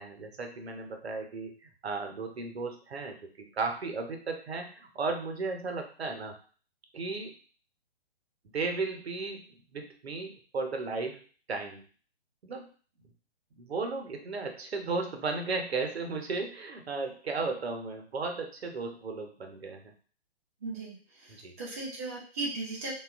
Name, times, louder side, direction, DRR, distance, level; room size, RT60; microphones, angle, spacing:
voice 1, 0.0-6.3 6.9-7.3 8.5-9.4 9.7-11.2 11.5-11.8 12.4-12.7 13.6-19.9 21.3-21.5, right 3 dB, 75° right, 4 dB, 0.7 m, -35 dB
voice 2, 20.6-22.9, right 3 dB, 15° right, -6 dB, 0.3 m, -37 dB
2.7 x 2.3 x 2.4 m, 0.41 s
figure-of-eight pair, 125°, 32 cm